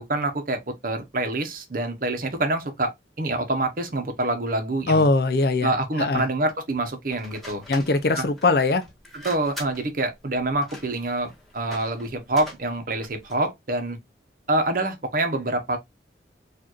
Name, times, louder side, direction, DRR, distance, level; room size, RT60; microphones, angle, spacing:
voice 1, 0.0-2.9 3.2-5.1 5.6-7.6 8.2-8.3 9.2-14.0 14.5-15.8, right 2 dB, 50° right, 0.8 m, -26 dB
voice 2, 4.9-5.7 6.0-6.3 7.7-8.8, left 3 dB, 55° left, 0.5 m, -21 dB
sound 1, 7.1-13.5, left 1 dB, ahead, 1.4 m, -43 dB
4.5 x 2.6 x 3.0 m
head